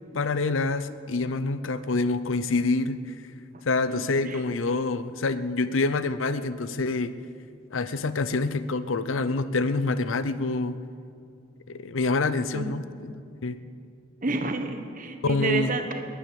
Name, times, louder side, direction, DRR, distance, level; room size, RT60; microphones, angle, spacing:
voice 1, 0.1-3.0 3.7-7.1 7.7-10.8 11.7-13.1 13.4-13.6 15.2-15.7, left 3 dB, 80° left, 14 dB, 0.6 m, -26 dB
voice 2, 3.9-4.4 12.5-12.7 14.2-16.0, right 3 dB, 40° right, 7 dB, 1.2 m, -30 dB
21.5 x 9.3 x 7.1 m, 2.4 s
head